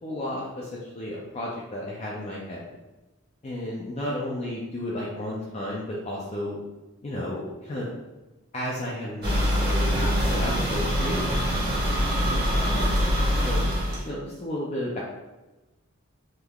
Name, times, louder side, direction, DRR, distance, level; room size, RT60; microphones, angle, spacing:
voice 1, 0.0-2.8 3.4-6.6 7.0-7.9 8.5-11.8 12.5-13.1 13.5-13.6 14.0-15.0, left 1 dB, 30° left, -4 dB, 0.4 m, -33 dB
sound 1, 9.2-14.1, equal, 45° right, 1.1 m, -24 dB
3.6 x 3.1 x 2.2 m, 1.1 s
head